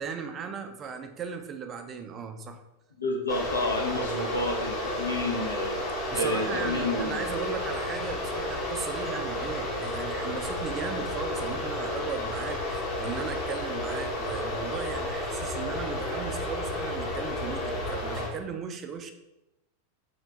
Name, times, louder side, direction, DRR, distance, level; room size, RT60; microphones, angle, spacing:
voice 1, 0.0-2.6 4.0-4.3 6.1-19.1, right 6 dB, 25° right, 6 dB, 0.4 m, -37 dB
voice 2, 3.0-7.3, left 1 dB, 75° left, 1 dB, 0.7 m, -30 dB
sound 1, 3.3-18.3, left 1 dB, 35° left, 0.9 m, -32 dB
3.3 x 2.5 x 4.0 m, 0.94 s
figure-of-eight pair, 90°, 0 cm